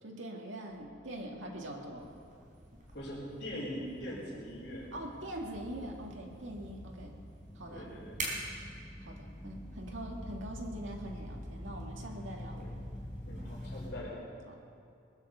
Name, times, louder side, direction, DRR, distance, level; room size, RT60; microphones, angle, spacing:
voice 1, 0.0-2.1 4.9-7.1 7.5-7.9 9.0-12.6 14.5-14.7, right 1 dB, 90° right, 0 dB, 2.2 m, -43 dB
sound 1, 0.7-14.1, left 1 dB, 10° left, 0.8 m, -47 dB
sound 2, 2.0-13.9, right 2 dB, 45° right, 4.2 m, -49 dB
voice 2, 2.9-4.9 7.7-8.1 12.5-12.7 13.3-14.2, equal, 55° left, -11 dB, 4.2 m, -42 dB
20.5 x 9.6 x 7.0 m, 2.4 s
head